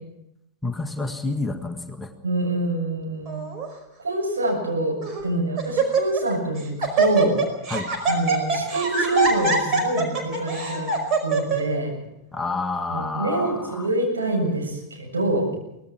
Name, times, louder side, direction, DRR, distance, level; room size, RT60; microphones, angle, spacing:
voice 1, 0.6-2.1 7.7-7.9 12.3-13.9, left 3 dB, 5° left, 4 dB, 1.7 m, -29 dB
voice 2, 2.2-3.4 4.0-7.4 8.1-10.9 11.2-11.9 12.9-15.5, right 2 dB, 75° right, 1 dB, 7.4 m, -25 dB
Laughter, 3.3-3.7 4.4-4.5 5.0-5.3 5.6-6.3 6.6-11.6, right 3 dB, 35° right, 5.1 m, -23 dB
24.0 x 18.5 x 6.0 m, 0.84 s
figure-of-eight pair, 90°, 0 cm